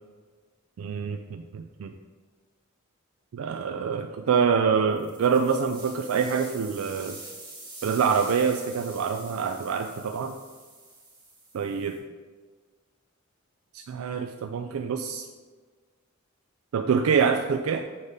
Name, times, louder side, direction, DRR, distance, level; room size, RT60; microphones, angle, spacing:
voice 1, 0.8-1.9 3.3-7.2 7.8-10.4 11.5-11.9 13.7-15.2 16.7-17.9, right 6 dB, 85° right, 6 dB, 0.4 m, -26 dB
sound 1, 4.9-12.0, right 2 dB, 25° right, 2.0 m, -46 dB
6.9 x 4.0 x 4.9 m, 1.4 s
head